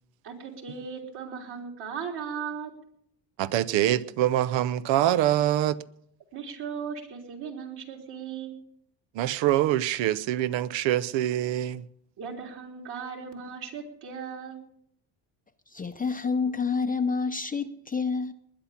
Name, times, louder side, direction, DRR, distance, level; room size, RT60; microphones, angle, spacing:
voice 1, 0.2-2.7 6.3-8.6 12.2-14.6, right 6 dB, 60° right, 3.8 m, -37 dB
voice 2, 3.4-5.8 9.1-11.8, right 13 dB, 80° right, 0.8 m, -24 dB
voice 3, 15.7-18.3, left 5 dB, 20° left, 0.7 m, -28 dB
20.0 x 10.0 x 5.8 m
cardioid pair, 115°, 44 cm